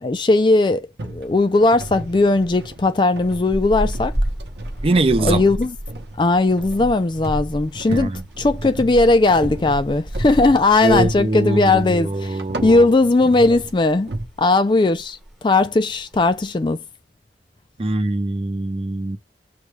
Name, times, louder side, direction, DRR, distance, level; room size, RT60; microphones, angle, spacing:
voice 1, 0.0-4.1 5.2-5.7 6.2-14.1 14.4-15.2 15.4-16.8, left 2 dB, 25° left, 0.3 m, -18 dB
sound 1, 1.0-14.2, right 1 dB, 70° right, 0.8 m, -35 dB
sound 2, 3.5-12.0 12.3-12.5 12.9-13.8 14.1-14.4 14.7-14.8 15.0-15.4 16.0-16.5, right 1 dB, ahead, 1.1 m, -31 dB
voice 2, 4.8-5.4 7.9-8.2 10.8-12.9 17.8-19.2, right 2 dB, 30° right, 0.5 m, -22 dB
6.4 x 2.3 x 3.1 m
head